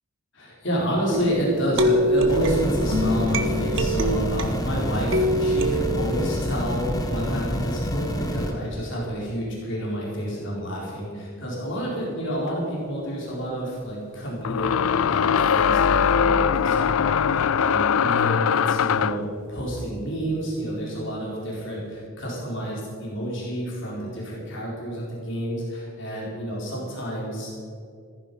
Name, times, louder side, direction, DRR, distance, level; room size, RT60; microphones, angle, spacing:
voice 1, 0.3-14.7 15.1-27.6, equal, 60° left, -4 dB, 4.1 m, -29 dB
sound 1, 1.1-4.7 5.1-6.3, equal, 60° right, 1.2 m, -24 dB
sound 2, 2.3-8.5, equal, 15° left, 1.5 m, -28 dB
sound 3, 12.5-12.6 14.4-19.3, left 7 dB, 75° left, 0.4 m, -21 dB
15.0 x 14.5 x 5.4 m, 2.2 s
head